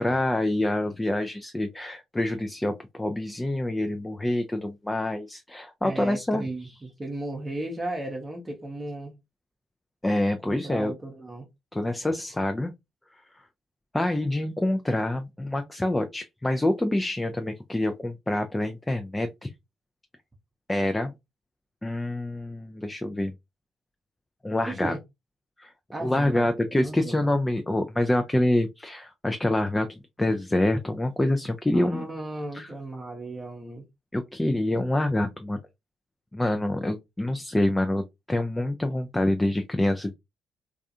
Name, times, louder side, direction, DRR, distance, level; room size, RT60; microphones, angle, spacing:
voice 1, 0.0-6.4 10.0-10.9 11.7-12.7 13.9-19.5 20.7-21.1 21.8-23.3 24.4-24.9 25.6-25.7 26.0-29.9 30.2-32.1 32.5-32.7 34.1-35.6 36.3-38.0 38.3-40.1, left 1 dB, 15° left, 0.4 m, -26 dB
voice 2, 5.8-9.1 10.4-11.5 24.6-25.0 25.9-27.3 31.7-33.9, right 2 dB, 30° right, 0.7 m, -35 dB
2.4 x 2.3 x 2.6 m
hypercardioid pair, 50°, 0 cm